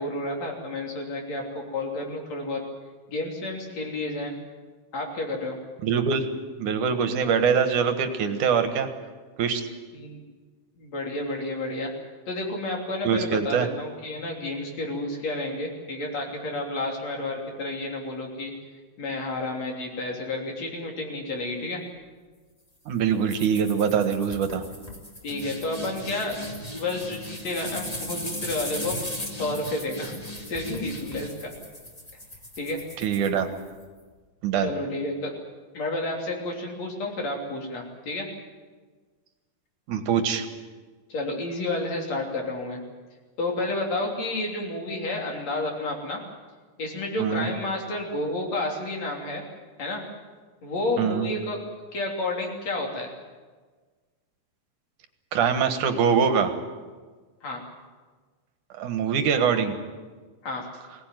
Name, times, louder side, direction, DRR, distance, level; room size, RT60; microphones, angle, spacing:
voice 1, 0.0-2.6 3.1-4.3 4.9-5.6 9.9-10.2 10.8-11.9 12.3-18.5 19.0-21.8 25.2-26.4 26.7-29.0 29.3-30.2 30.5-31.5 32.6-32.8 34.6-35.3 35.7-38.3 41.1-42.8 43.4-46.2 46.8-49.4 49.8-50.0 50.6-51.6 51.9-53.1 57.4-57.6 60.4-60.7, left 2 dB, 60° left, 1 dB, 4.5 m, -30 dB
voice 2, 5.8-6.3 6.6-8.9 9.4-9.7 13.0-13.7 22.9-24.6 33.0-33.5 34.4-34.7 39.9-40.5 47.2-47.5 51.0-51.3 55.3-56.5 58.7-59.8, right 7 dB, 80° right, 8 dB, 3.0 m, -23 dB
sound 1, 23.3-33.8, left 1 dB, 15° left, 2.4 m, -37 dB
21.5 x 18.0 x 9.2 m, 1.4 s
omnidirectional pair, 3.5 m